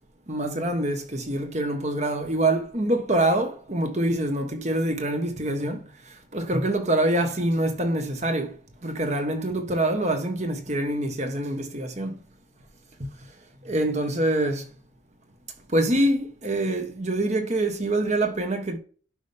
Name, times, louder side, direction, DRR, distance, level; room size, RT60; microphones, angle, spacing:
voice 1, 0.3-8.6 8.8-12.2 13.6-14.7 15.7-18.8, right 1 dB, 35° right, 1.4 m, -25 dB
11.5 x 5.5 x 3.6 m
head